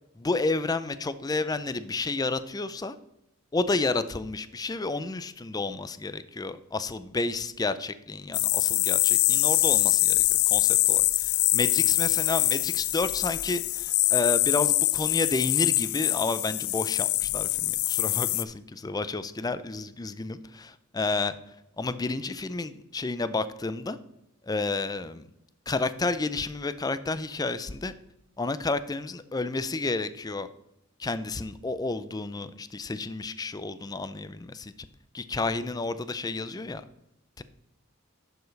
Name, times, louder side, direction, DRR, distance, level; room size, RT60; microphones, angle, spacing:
voice 1, 0.2-3.0 3.5-21.4 21.8-24.0 24.4-25.3 25.7-27.9 28.4-30.5 31.0-34.7 35.1-36.8 37.4-37.5, left 3 dB, 20° left, 14 dB, 0.4 m, -31 dB
sound 1, 8.3-18.4, left 18 dB, 85° left, 0.4 m, -24 dB
10.5 x 7.0 x 3.3 m, 0.86 s
head